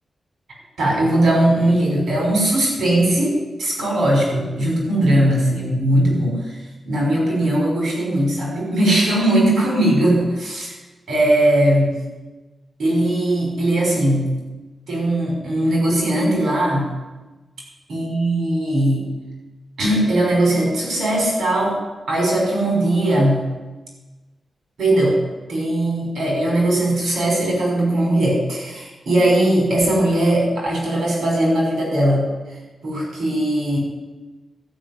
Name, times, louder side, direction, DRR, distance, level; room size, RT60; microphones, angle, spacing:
voice 1, 0.8-10.7 11.1-12.0 12.8-14.3 14.9-16.9 17.9-19.1 19.8-21.8 22.1-23.5 24.8-25.2 25.5-32.3 32.8-33.8, right 1 dB, 85° right, -2 dB, 5.9 m, -19 dB
13.0 x 6.6 x 9.4 m, 1.2 s
wide cardioid pair, 90°, 0 cm